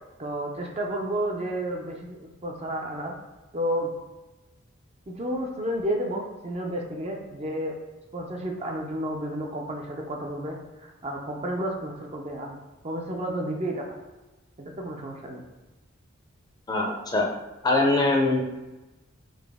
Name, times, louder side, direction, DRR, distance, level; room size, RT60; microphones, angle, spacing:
voice 1, 0.2-3.2 3.5-3.9 5.1-7.8 8.1-14.0 14.6-15.4, right 1 dB, 30° right, 1 dB, 0.5 m, -31 dB
voice 2, 16.7-17.3 17.6-18.4, left 2 dB, 20° left, -1 dB, 0.5 m, -22 dB
4.0 x 3.0 x 3.5 m, 1.1 s
head